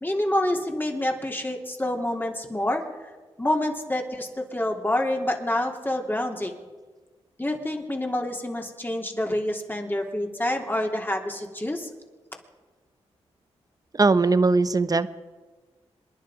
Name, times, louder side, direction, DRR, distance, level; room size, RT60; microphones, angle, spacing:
voice 1, 0.0-2.8 3.4-6.5 7.4-11.9, left 1 dB, 15° left, 2 dB, 3.2 m, -27 dB
voice 2, 13.9-15.1, right 3 dB, 35° right, 14 dB, 1.0 m, -20 dB
27.0 x 10.5 x 5.0 m, 1.3 s
cardioid pair, 50°, 12 cm